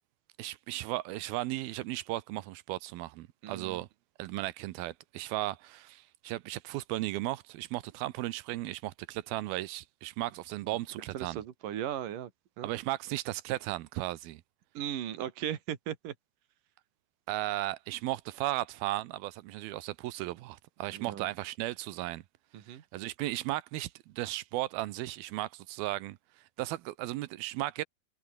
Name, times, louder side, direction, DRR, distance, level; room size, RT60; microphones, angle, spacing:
voice 1, 0.4-3.9 4.2-11.4 12.6-14.4 17.3-22.2 22.7-26.2 26.6-27.8, right 17 dB, 90° right, 2.7 m, -35 dB
voice 2, 3.4-3.8 11.1-12.3 12.6-12.7 14.8-16.1 20.9-21.3 22.5-22.8, right 11 dB, 65° right, 3.5 m, -37 dB
omnidirectional pair, 4.3 m